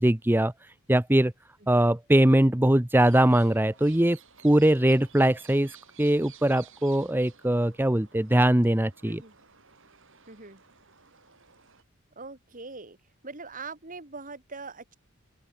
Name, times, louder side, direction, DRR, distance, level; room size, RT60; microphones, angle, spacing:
voice 1, 0.0-1.3 1.7-4.2 4.4-9.2, right 1 dB, 10° right, 0.8 m, -22 dB
sound 1, 2.9-11.8, right 8 dB, 60° right, 6.5 m, -55 dB
voice 2, 9.0-9.3 10.3-10.6 12.1-13.0 13.2-15.0, right 4 dB, 40° right, 3.3 m, -42 dB
open air
head